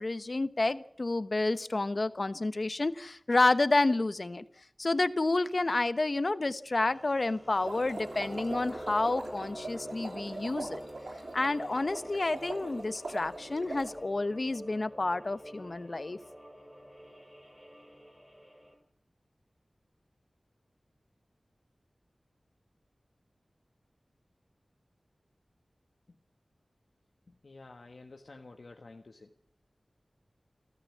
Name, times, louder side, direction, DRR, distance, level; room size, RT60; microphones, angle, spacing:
voice 1, 0.0-4.4 4.8-10.8 11.3-16.2, left 2 dB, 50° left, 13 dB, 1.0 m, -29 dB
sound 1, 6.8-18.7, equal, 5° right, 7.1 m, -47 dB
sound 2, 7.5-14.0, right 2 dB, 80° right, 3.0 m, -42 dB
voice 2, 27.4-29.3, left 3 dB, 65° left, 3 dB, 1.4 m, -50 dB
30.0 x 13.0 x 7.4 m, 0.64 s
wide cardioid pair, 55°, 0 cm